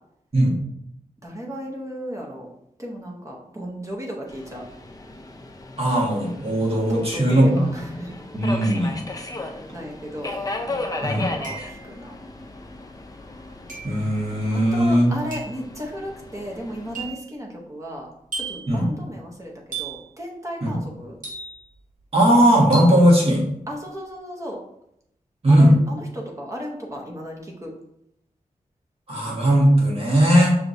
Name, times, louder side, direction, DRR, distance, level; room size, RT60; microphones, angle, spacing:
voice 1, 1.2-2.5 2.8-4.6 6.9-8.1 9.3-10.4 10.7-12.2 14.5-18.1 18.3-21.2 23.7-24.6 25.5-27.7, equal, 20° right, -2 dB, 0.8 m, -35 dB
Subway metro underground, 4.3-17.1, left 2 dB, 25° left, 0.4 m, -36 dB
voice 2, 5.8-7.6 8.3-8.9 11.0-11.3 13.8-15.1 18.7-18.9 20.6-20.7 22.1-23.4 25.4-25.7 29.1-30.6, equal, 45° right, -3 dB, 1.4 m, -18 dB
sound 1, 10.3-10.4 11.4-12.0 13.7-14.0 15.3-15.6 16.9-17.3 18.3-18.7 19.7-20.1 21.2-21.8 22.7-23.1, right 4 dB, 65° right, 1.6 m, -34 dB
5.6 x 3.0 x 2.6 m, 0.76 s
wide cardioid pair, 120°, 14 cm